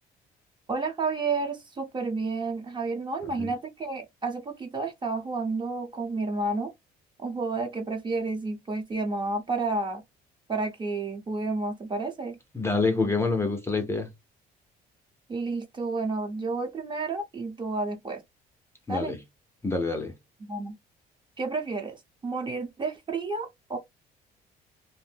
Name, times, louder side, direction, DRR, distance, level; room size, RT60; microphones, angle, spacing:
voice 1, 0.7-6.7 7.2-10.0 10.5-12.4 15.3-18.2 18.9-19.2 20.4-20.8 21.4-23.8, right 3 dB, 25° right, 0.9 m, -31 dB
voice 2, 12.5-14.1 18.9-19.2 19.6-20.1, left 3 dB, 15° left, 0.6 m, -26 dB
2.6 x 2.1 x 3.3 m
cardioid pair, 110°, 17 cm